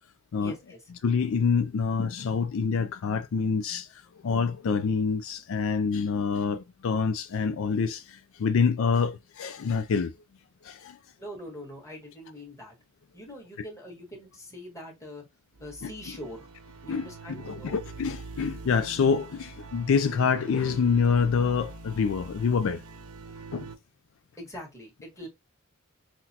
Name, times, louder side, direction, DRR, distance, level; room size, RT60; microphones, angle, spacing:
voice 1, 0.4-0.8 11.2-12.7 13.1-15.2 15.6-16.5 16.8-17.8 24.4-25.3, equal, 15° left, 1.6 m, -43 dB
voice 2, 1.0-10.1 10.6-11.0 15.8-15.9 16.9-17.1 17.4-22.8 23.5-23.7, left 5 dB, 60° left, 0.4 m, -26 dB
sound 1, 15.5-23.8, right 4 dB, 80° right, 0.8 m, -44 dB
5.9 x 2.1 x 2.8 m
head